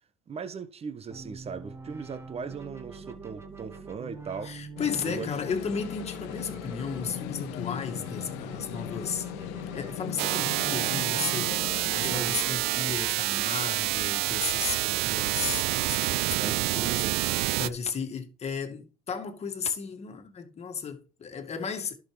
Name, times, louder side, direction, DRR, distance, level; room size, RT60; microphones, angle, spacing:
voice 1, 0.3-4.5 5.0-5.3 11.9-12.4 16.3-17.2, right 5 dB, 35° right, 1.3 m, -38 dB
sound 1, 1.1-13.1, right 3 dB, 15° right, 1.7 m, -44 dB
voice 2, 4.4-21.9, left 6 dB, 35° left, 2.1 m, -35 dB
sound 2, 4.8-12.2, left 14 dB, 75° left, 0.9 m, -38 dB
sound 3, 10.2-17.7, right 17 dB, 70° right, 0.6 m, -28 dB
11.5 x 6.5 x 3.3 m
supercardioid pair, 80°, 18 cm